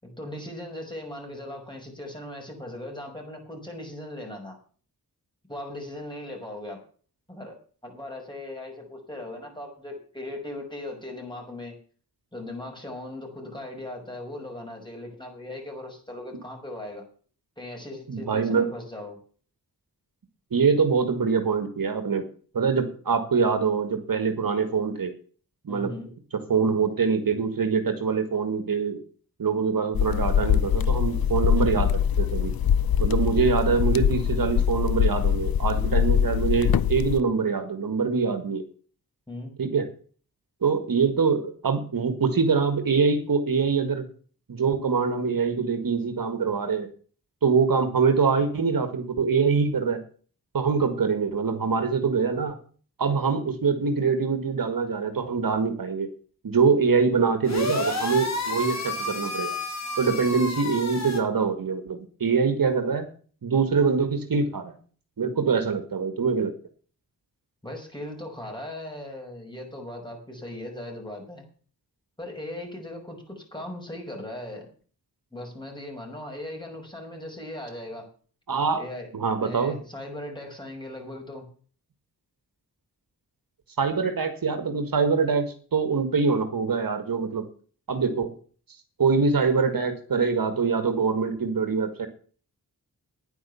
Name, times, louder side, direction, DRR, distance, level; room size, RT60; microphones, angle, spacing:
voice 1, 0.0-4.6 5.5-6.8 7.3-11.8 12.3-17.0 17.6-19.2 25.7-26.1 39.3-39.5 67.6-71.4 72.2-74.7 75.3-78.1 78.8-79.1 79.4-81.4, left 1 dB, 10° left, 2 dB, 5.9 m, -38 dB
voice 2, 18.1-18.7 20.5-22.2 22.5-25.1 25.6-25.9 26.5-29.0 29.4-32.5 33.0-38.6 39.6-39.9 40.6-44.0 44.5-46.9 47.4-50.0 50.5-52.6 53.0-56.1 56.4-59.6 60.0-63.1 63.4-64.8 65.2-66.5 78.5-78.8 79.1-79.7 83.8-87.4 87.9-88.3 89.0-92.1, right 5 dB, 65° right, 8 dB, 2.0 m, -24 dB
sound 1, 29.9-37.2, left 9 dB, 70° left, 0.7 m, -23 dB
sound 2, 57.4-61.2, left 3 dB, 45° left, 3.7 m, -30 dB
10.5 x 9.5 x 7.0 m, 0.42 s
wide cardioid pair, 80°, 37 cm